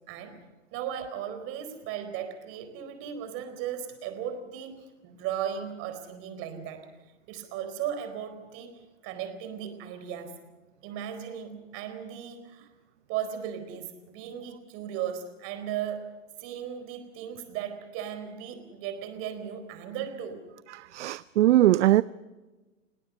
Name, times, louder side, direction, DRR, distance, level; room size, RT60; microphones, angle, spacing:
voice 1, 0.1-0.4 0.7-6.9 7.3-10.4 10.8-12.7 13.1-16.1 16.4-20.4, right 9 dB, 35° right, 4.4 m, -36 dB
voice 2, 20.8-22.0, right 14 dB, 65° right, 0.6 m, -21 dB
29.5 x 18.5 x 5.5 m
hypercardioid pair, 130°, 39 cm